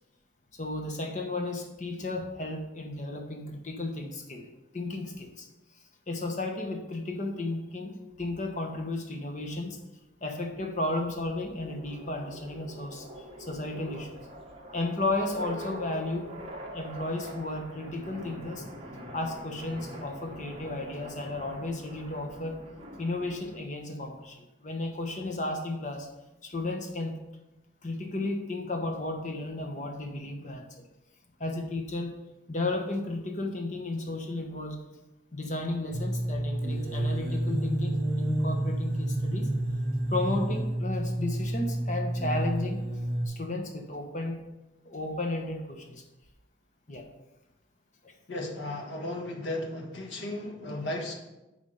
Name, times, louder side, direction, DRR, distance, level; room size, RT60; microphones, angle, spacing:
voice 1, 0.6-4.4 4.7-5.5 6.1-9.8 10.2-13.1 13.4-14.2 14.7-16.3 16.7-18.6 19.1-22.5 23.0-26.1 26.4-27.1 27.8-30.7 31.4-32.1 32.5-34.8 35.3-39.5 40.1-42.8 43.3-44.4 44.8-45.9 46.9-47.0, left 2 dB, 40° left, 3 dB, 1.1 m, -33 dB
sound 1, 10.6-23.6, equal, 30° right, 1.2 m, -44 dB
sound 2, 35.9-43.3, right 1 dB, 50° right, 1.8 m, -29 dB
voice 2, 48.3-51.2, left 1 dB, 70° left, 1 dB, 1.4 m, -35 dB
9.9 x 3.6 x 5.6 m, 1.0 s
head